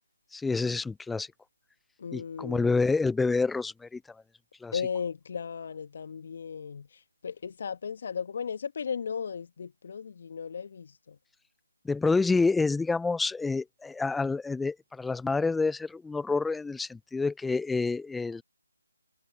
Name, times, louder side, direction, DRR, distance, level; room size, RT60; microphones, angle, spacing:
voice 1, 0.3-1.3 2.1-4.0 4.6-4.8 11.8-18.4, left 4 dB, 5° left, 0.4 m, -28 dB
voice 2, 2.0-2.8 4.7-11.2, left 6 dB, 40° left, 1.7 m, -36 dB
figure-of-eight pair, 155°, 0 cm